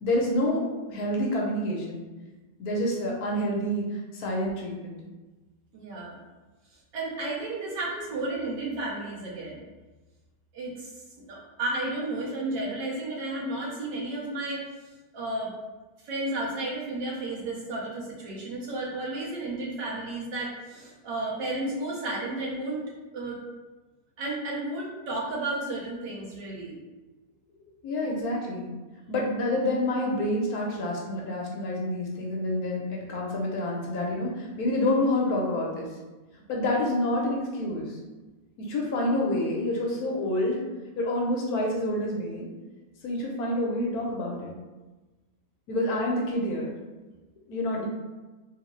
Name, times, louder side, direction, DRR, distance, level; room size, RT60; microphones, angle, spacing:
voice 1, 0.0-0.6 0.9-2.0 2.6-3.8 4.1-4.9 27.8-28.7 29.1-35.9 36.5-38.0 38.6-40.7 41.0-42.5 43.0-44.5 45.7-46.7 47.5-47.9, left 1 dB, 65° left, -2 dB, 1.1 m, -28 dB
voice 2, 5.7-6.2 6.9-9.6 10.5-10.9 11.2-14.6 15.1-15.5 16.0-22.9 23.1-23.4 24.2-26.8 28.1-28.2, right 2 dB, 90° right, -3 dB, 1.5 m, -32 dB
3.4 x 2.8 x 3.1 m, 1.2 s
omnidirectional pair, 1.8 m